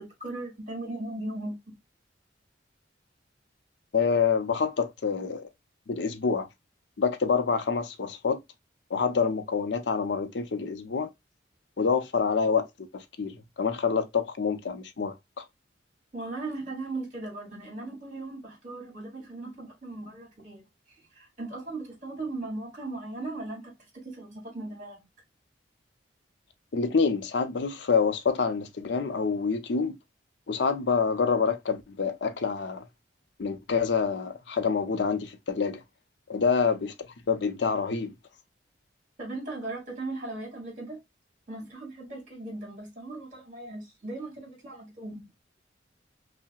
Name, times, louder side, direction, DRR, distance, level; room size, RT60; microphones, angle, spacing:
voice 1, 0.0-1.5 16.1-25.0 39.2-41.0 41.5-45.3, right 2 dB, 40° right, 2.3 m, -38 dB
voice 2, 3.9-5.4 5.9-6.5 7.0-8.4 8.9-11.1 11.8-12.7 12.9-15.4 26.7-30.0 30.5-32.8 33.4-35.8 36.3-36.9 37.3-38.1, left 5 dB, 70° left, 0.6 m, -27 dB
5.5 x 2.1 x 2.3 m
head